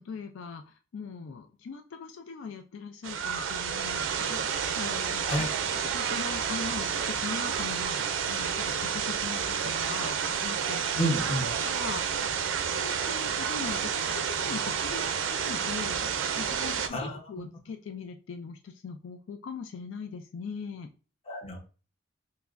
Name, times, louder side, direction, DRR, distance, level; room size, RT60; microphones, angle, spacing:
voice 1, 0.0-5.3 5.7-11.1 11.6-20.9, left 5 dB, 80° left, 7 dB, 0.4 m, -41 dB
sound 1, 3.0-16.9, right 7 dB, 85° right, 0.4 m, -30 dB
voice 2, 11.0-11.5 16.9-17.5 21.3-21.6, equal, 30° left, 1 dB, 0.8 m, -30 dB
5.5 x 2.0 x 2.4 m, 0.36 s
head